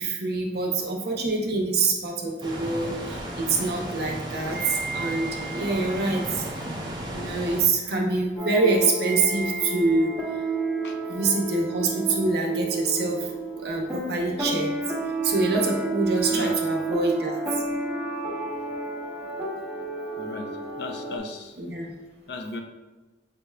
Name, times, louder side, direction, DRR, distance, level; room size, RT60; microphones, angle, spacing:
voice 1, 0.0-6.5 7.1-10.7 11.1-13.3 13.6-14.7 15.2-17.6 21.6-21.9, right 3 dB, 55° right, 0 dB, 0.7 m, -25 dB
sound 1, 2.4-7.6, right 1 dB, 25° right, 0.6 m, -34 dB
sound 2, 8.4-21.2, right 2 dB, 5° right, 0.9 m, -30 dB
voice 2, 20.2-20.5 20.8-21.6 22.3-22.6, left 2 dB, 65° left, 4 dB, 0.5 m, -35 dB
5.1 x 2.3 x 3.2 m, 1.2 s
head